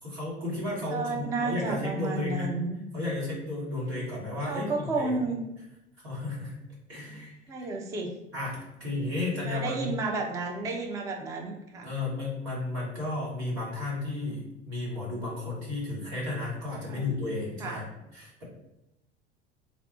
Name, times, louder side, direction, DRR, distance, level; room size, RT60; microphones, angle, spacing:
voice 1, 0.0-2.5 2.9-5.3 6.0-6.5 6.9-7.7 8.3-9.9 11.8-18.4, left 2 dB, 75° right, -6 dB, 1.5 m, -33 dB
voice 2, 0.9-2.8 4.4-5.4 7.5-8.1 9.5-11.9 16.9-17.0 17.6-17.8, right 3 dB, 10° right, 1 dB, 0.4 m, -32 dB
3.3 x 2.3 x 3.6 m, 0.92 s
figure-of-eight pair, 70°, 33 cm